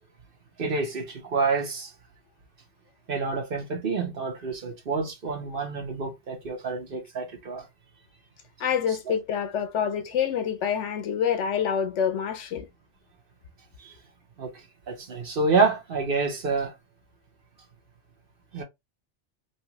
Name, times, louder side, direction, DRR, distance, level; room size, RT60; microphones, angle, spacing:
voice 1, 0.6-1.9 3.1-7.7 13.8-13.9 14.4-16.7 18.5-18.6, right 4 dB, 50° right, 1.1 m, -28 dB
voice 2, 8.6-12.7, left 8 dB, 80° left, 1.0 m, -27 dB
3.3 x 2.6 x 2.8 m
omnidirectional pair, 1.2 m